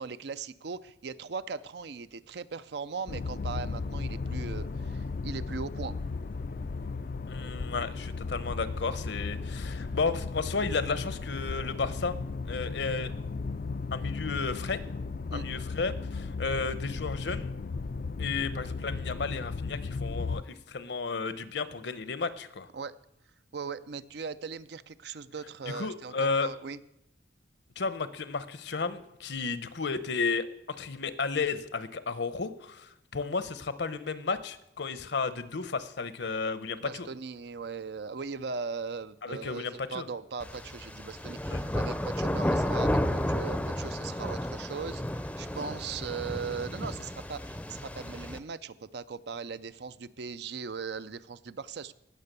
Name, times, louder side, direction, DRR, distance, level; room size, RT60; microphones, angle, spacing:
voice 1, 0.0-5.9 15.3-15.4 22.7-23.0 23.5-26.8 36.8-51.9, right 5 dB, 60° right, 14 dB, 0.5 m, -39 dB
sound 1, 3.1-20.4, left 4 dB, 50° left, 0.4 m, -35 dB
voice 2, 7.3-12.2 12.5-13.1 13.9-14.8 15.3-17.5 18.2-22.7 25.6-26.5 27.8-37.1 39.2-40.1 41.5-41.6, left 4 dB, 65° left, 13 dB, 0.9 m, -33 dB
sound 2, 40.4-48.4, equal, 5° left, 0.6 m, -32 dB
18.0 x 6.8 x 6.8 m, 0.82 s
head